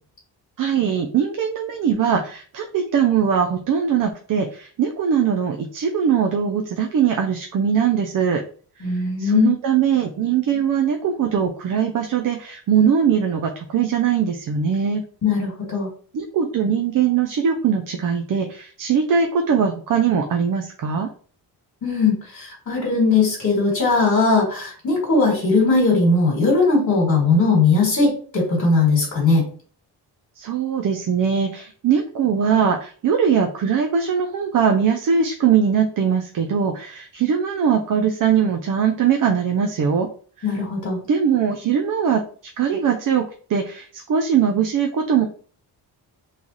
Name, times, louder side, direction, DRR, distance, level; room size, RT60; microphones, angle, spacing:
voice 1, 0.6-8.4 8.9-15.0 16.1-21.1 30.4-40.1 41.1-42.2 42.6-45.2, right 7 dB, 50° right, 4 dB, 0.5 m, -21 dB
voice 2, 8.8-9.5 15.2-15.9 21.8-29.4 40.4-41.0, left 3 dB, 45° left, -2 dB, 1.6 m, -19 dB
3.2 x 2.4 x 3.9 m, 0.43 s
cardioid pair, 110°, 43 cm